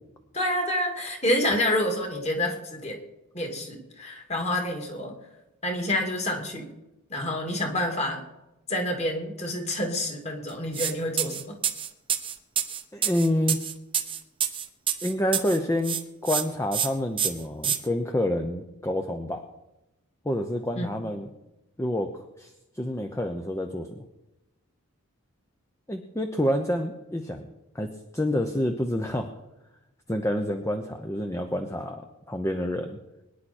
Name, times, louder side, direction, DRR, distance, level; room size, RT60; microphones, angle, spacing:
voice 1, 0.3-3.0 3.3-5.2 5.6-6.7 7.1-8.2 8.7-11.6 20.8-20.9, left 1 dB, 30° left, 3 dB, 2.4 m, -28 dB
sound 1, 10.7-10.9 11.2-15.6 15.8-16.4 16.7-16.9 17.2-17.8, right 8 dB, 25° right, 0.8 m, -27 dB
voice 2, 12.9-13.6 15.0-16.0 16.2-19.5 20.2-21.3 21.8-22.1 22.4-24.0 25.9-27.4 27.7-29.3 30.1-33.0, left 1 dB, 15° left, 5 dB, 0.8 m, -28 dB
23.0 x 10.5 x 4.3 m, 0.97 s
head